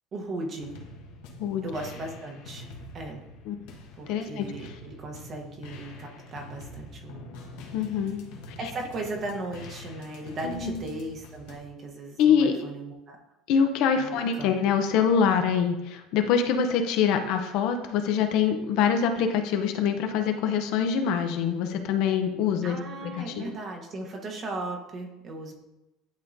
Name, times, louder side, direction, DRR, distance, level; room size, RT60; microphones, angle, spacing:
voice 1, 0.1-0.7 1.6-2.7 2.9-3.2 4.0-7.3 8.6-13.2 13.9-14.8 22.6-25.5, right 2 dB, 30° right, 2 dB, 1.0 m, -37 dB
sound 1, 0.6-11.6, left 2 dB, 75° left, 1.1 m, -45 dB
voice 2, 4.1-4.5 7.7-8.6 10.4-10.9 12.2-12.6 13.5-23.6, left 7 dB, 60° left, 7 dB, 0.6 m, -25 dB
10.5 x 3.7 x 2.6 m, 0.97 s
cardioid pair, 150°, 0 cm